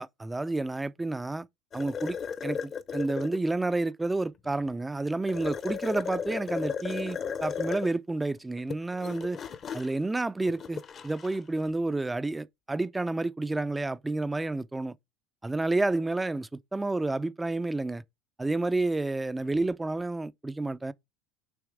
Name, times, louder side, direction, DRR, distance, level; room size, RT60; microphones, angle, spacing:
voice 1, 0.0-1.5 1.7-2.2 2.4-9.4 9.7-14.9 15.4-18.0 18.4-20.9, right 2 dB, 10° right, 0.4 m, -30 dB
sound 1, 1.7-3.4 5.3-7.9 8.5-11.4, left 7 dB, 35° left, 0.8 m, -35 dB
7.0 x 3.1 x 4.7 m
supercardioid pair, 110°, 0 cm